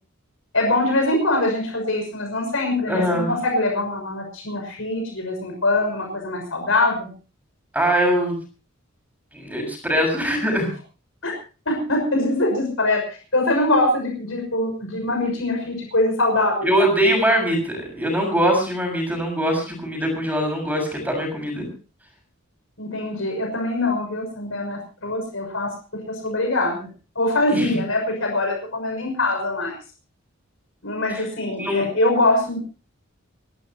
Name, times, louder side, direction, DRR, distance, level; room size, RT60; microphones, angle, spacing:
voice 1, 0.5-7.1 11.2-11.3 11.7-13.0 13.3-16.7 22.8-25.7 26.2-26.9 27.1-29.7 30.8-32.6, left 2 dB, 75° left, 2 dB, 6.4 m, -23 dB
voice 2, 2.9-3.3 7.7-8.4 9.3-10.7 16.6-21.7 27.5-27.8 31.1-31.2 31.6-31.8, equal, 10° right, 2 dB, 7.0 m, -22 dB
29.5 x 13.0 x 2.9 m, 0.36 s
head